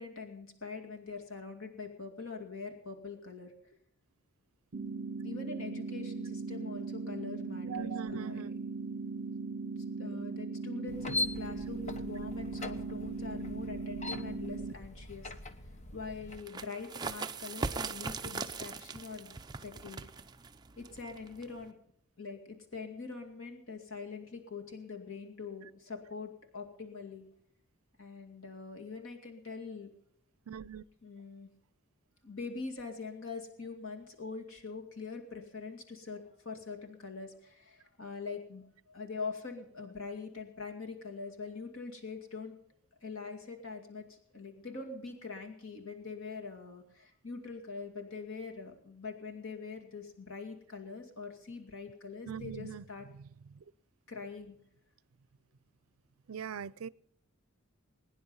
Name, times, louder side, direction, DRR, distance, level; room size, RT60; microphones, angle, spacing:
voice 1, 0.0-3.5 5.2-8.6 10.0-15.5 15.9-19.4 19.6-20.0 20.8-21.8 22.2-27.3 28.0-29.9 31.0-31.5 32.2-42.6 43.0-53.1 54.1-54.6, left 4 dB, 75° left, 2.3 m, -43 dB
sound 1, 4.7-14.7, right 4 dB, 60° right, 0.8 m, -39 dB
voice 2, 7.6-8.5 30.5-30.8 52.3-52.8 53.1-53.2 56.3-56.9, right 7 dB, 90° right, 0.5 m, -41 dB
sound 2, 10.9-16.4, left 2 dB, 35° left, 1.1 m, -41 dB
sound 3, 16.3-21.7, right 4 dB, 20° right, 0.6 m, -40 dB
21.5 x 10.0 x 5.5 m
head